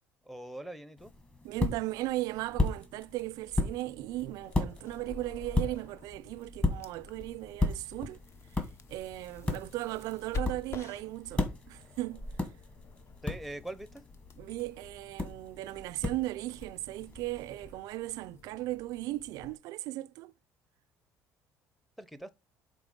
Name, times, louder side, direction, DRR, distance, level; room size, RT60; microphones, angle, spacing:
voice 1, 0.2-1.1 13.2-14.0 22.0-22.3, right 1 dB, ahead, 0.7 m, -42 dB
sound 1, 1.0-17.7, left 2 dB, 20° left, 1.5 m, -36 dB
voice 2, 1.4-8.2 8.9-12.3 14.4-20.3, right 17 dB, 75° right, 0.4 m, -37 dB
sound 2, 4.1-19.6, left 3 dB, 45° left, 0.8 m, -48 dB
5.1 x 3.9 x 5.0 m
cardioid pair, 105°, 6 cm